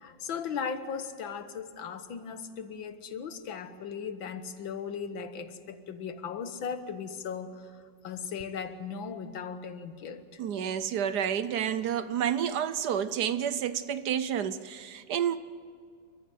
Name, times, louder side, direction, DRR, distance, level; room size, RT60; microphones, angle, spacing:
voice 1, 0.0-10.4, left 6 dB, 90° left, 10 dB, 2.0 m, -37 dB
voice 2, 10.4-15.4, right 9 dB, 65° right, 14 dB, 1.2 m, -30 dB
28.5 x 14.5 x 9.2 m, 2.2 s
omnidirectional pair, 2.0 m